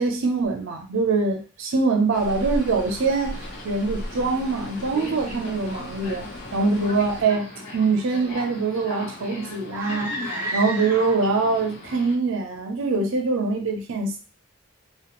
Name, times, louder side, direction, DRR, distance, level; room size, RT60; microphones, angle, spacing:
voice 1, 0.0-7.5 7.7-10.1 10.5-14.2, right 3 dB, 65° right, 3 dB, 0.5 m, -24 dB
sound 1, 2.1-7.2, equal, 55° left, 0.8 m, -36 dB
Subway metro underground, 3.2-12.1, left 2 dB, 90° left, 1.2 m, -39 dB
sound 2, 9.7-11.5, right 1 dB, 10° right, 0.4 m, -31 dB
2.4 x 2.2 x 2.9 m, 0.35 s
head